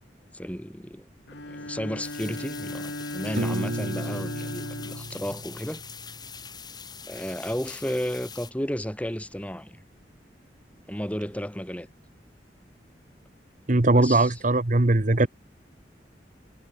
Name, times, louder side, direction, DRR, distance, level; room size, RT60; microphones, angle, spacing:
voice 1, 0.3-1.0 1.5-5.8 7.1-9.8 10.9-11.9 13.9-14.3, equal, 10° left, 4.1 m, -33 dB
Bowed string instrument, 1.3-5.9, left 1 dB, 85° left, 4.9 m, -37 dB
sound 1, 2.0-8.5, left 6 dB, 25° left, 3.7 m, -43 dB
Piano, 3.4-6.3, right 1 dB, 70° right, 1.7 m, -34 dB
voice 2, 13.7-15.3, right 2 dB, 45° right, 1.2 m, -20 dB
head